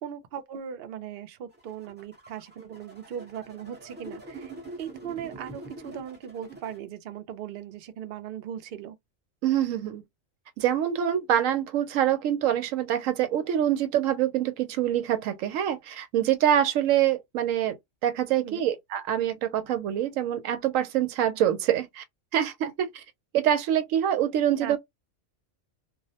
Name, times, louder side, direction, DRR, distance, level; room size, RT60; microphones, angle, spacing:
voice 1, 0.0-4.5 4.8-9.0 18.4-18.6 24.6-24.8, right 9 dB, 60° right, 0.6 m, -38 dB
sound 1, 1.5-6.8, right 2 dB, 10° right, 0.5 m, -44 dB
voice 2, 9.4-10.0 10.6-17.8 18.0-22.0 22.3-23.0 23.3-24.8, right 10 dB, 85° right, 1.0 m, -25 dB
2.4 x 2.0 x 2.7 m
omnidirectional pair, 1.3 m